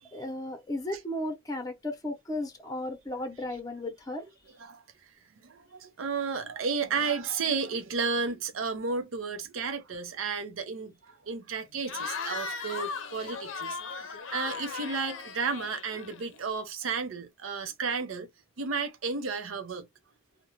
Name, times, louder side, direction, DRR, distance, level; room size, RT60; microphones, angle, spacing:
voice 1, 0.1-4.2, left 1 dB, 20° left, 0.7 m, -35 dB
voice 2, 5.4-18.3 18.6-19.8, right 5 dB, 85° right, 0.5 m, -33 dB
Cheering / Crowd, 11.8-16.4, left 5 dB, 75° left, 0.5 m, -37 dB
2.3 x 2.1 x 3.0 m
head